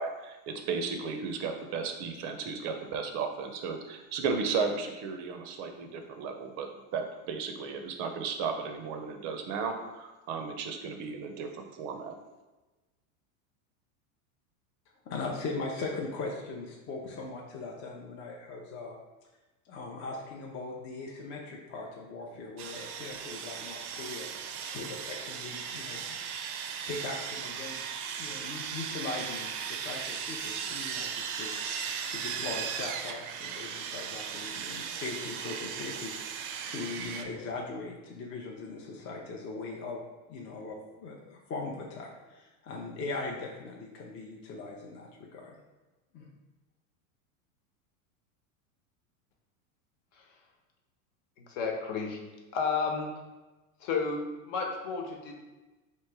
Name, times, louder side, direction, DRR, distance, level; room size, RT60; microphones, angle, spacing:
voice 1, 0.0-12.1, right 5 dB, 40° right, 5 dB, 0.5 m, -34 dB
voice 2, 15.1-18.9 19.6-24.3 24.7-26.2 26.8-31.5 32.1-40.0 40.3-45.6 46.1-46.3, left 3 dB, 30° left, -1 dB, 0.5 m, -40 dB
Sawing, 22.6-37.2, right 7 dB, 90° right, 0.6 m, -37 dB
voice 3, 51.4-52.2 52.5-53.1 53.8-55.3, left 5 dB, 60° left, 2 dB, 1.0 m, -32 dB
3.0 x 3.0 x 4.6 m, 1.1 s
supercardioid pair, 130°, 42 cm